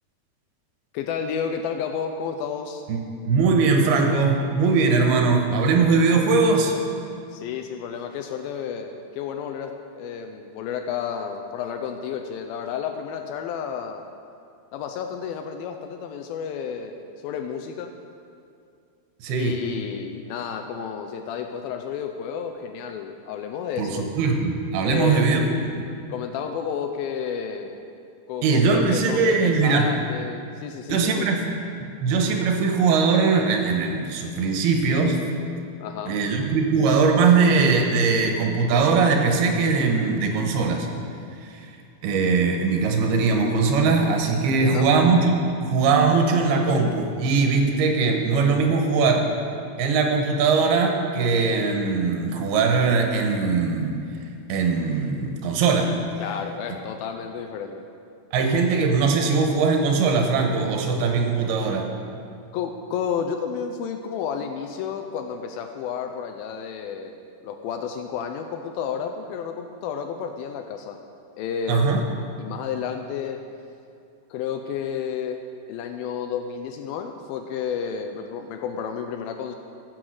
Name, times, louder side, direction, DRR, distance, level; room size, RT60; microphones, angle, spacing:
voice 1, 0.9-2.8 7.3-14.1 14.7-17.9 19.3-24.1 24.8-25.7 26.1-27.8 28.3-31.3 35.8-36.1 44.4-44.9 56.2-57.9 62.5-71.0 71.4-73.4 74.3-75.4 75.7-79.6, left 7 dB, 80° left, 6 dB, 2.2 m, -31 dB
voice 2, 3.3-6.7 19.2-19.6 23.8-25.4 25.8-25.9 28.4-29.9 30.9-31.5 32.0-35.3 36.1-40.9 41.4-41.6 42.0-49.2 49.8-54.0 54.5-56.0 58.3-61.9 71.7-72.0, right 4 dB, 80° right, 3 dB, 3.0 m, -20 dB
14.5 x 6.4 x 6.2 m, 2.4 s
omnidirectional pair, 4.6 m